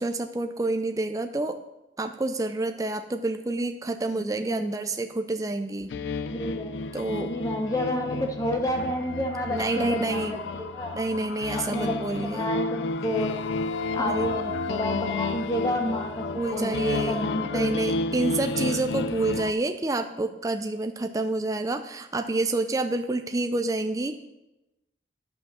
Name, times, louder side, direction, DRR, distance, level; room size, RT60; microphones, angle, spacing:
voice 1, 0.0-1.6 2.0-5.9 6.9-7.3 9.5-10.4 10.9-12.5 14.0-14.3 16.3-24.2, right 2 dB, 20° right, 7 dB, 0.4 m, -28 dB
voice 2, 4.1-4.9 6.3-11.0 11.6-11.9 12.3-13.4 13.9-16.2 16.5-17.7, left 1 dB, 20° left, 3 dB, 0.9 m, -30 dB
sound 1, 5.9-19.5, left 3 dB, 85° left, 0.5 m, -31 dB
10.0 x 5.7 x 6.2 m, 0.97 s
head